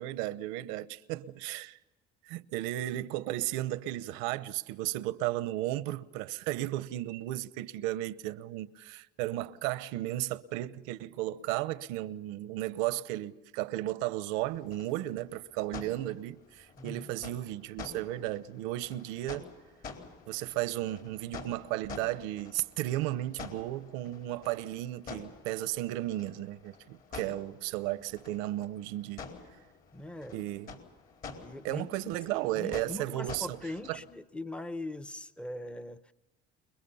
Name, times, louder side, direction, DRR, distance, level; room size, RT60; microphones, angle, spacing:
voice 1, 0.0-1.8 2.2-19.5 20.3-29.2 30.3-30.7 31.6-33.6 33.9-34.0, right 15 dB, 90° right, 0.9 m, -34 dB
sound 1, 14.4-34.1, left 5 dB, 45° left, 4.2 m, -49 dB
voice 2, 16.8-17.1 29.9-30.5 31.4-32.0 32.5-36.1, left 1 dB, 5° left, 0.8 m, -41 dB
30.0 x 22.0 x 5.6 m
cardioid pair, 120°, 20 cm